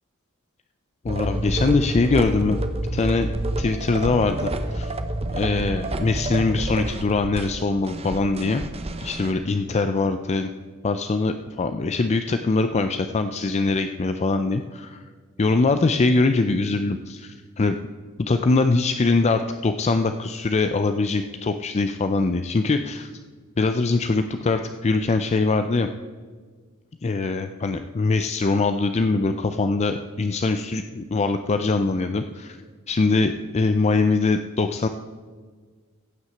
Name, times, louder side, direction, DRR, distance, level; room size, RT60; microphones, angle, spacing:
voice 1, 1.0-2.6 2.9-3.3 3.6-4.9 5.3-8.6 9.0-10.5 10.8-15.0 15.4-17.8 18.2-23.1 23.6-25.9 27.0-32.6 32.9-34.9, left 3 dB, 30° left, 8 dB, 0.4 m, -22 dB
sound 1, 1.1-9.3, right 1 dB, 30° right, 0.8 m, -29 dB
15.0 x 5.9 x 7.8 m, 1.5 s
head